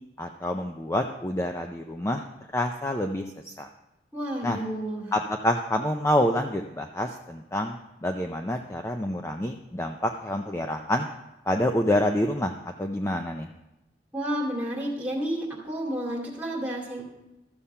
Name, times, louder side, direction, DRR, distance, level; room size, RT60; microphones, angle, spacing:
voice 1, 0.2-2.2 2.5-3.7 4.4-4.6 5.1-11.1 11.5-12.5 12.8-13.5, left 1 dB, 15° left, 4 dB, 0.4 m, -27 dB
voice 2, 4.1-5.1 14.1-17.0, right 1 dB, 10° right, -3 dB, 2.4 m, -31 dB
13.5 x 7.1 x 5.5 m, 0.97 s
head